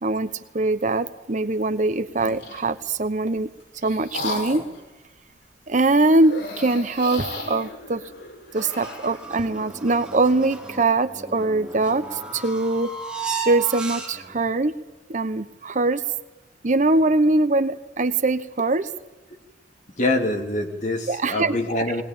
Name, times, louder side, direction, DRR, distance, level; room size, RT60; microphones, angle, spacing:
voice 1, 0.0-3.5 3.8-4.6 5.7-8.0 8.5-12.9 13.4-14.8 15.1-16.0 16.6-18.9 21.1-21.6, right 2 dB, 45° right, 11 dB, 0.9 m, -22 dB
sound 1, 2.1-2.7 3.4-4.8 6.2-9.2, left 2 dB, 85° left, 5.5 m, -35 dB
sound 2, 8.6-14.4, right 5 dB, 5° right, 4.4 m, -35 dB
voice 2, 20.0-22.0, left 1 dB, 45° left, 3 dB, 2.9 m, -24 dB
20.0 x 20.0 x 8.8 m, 1.0 s
head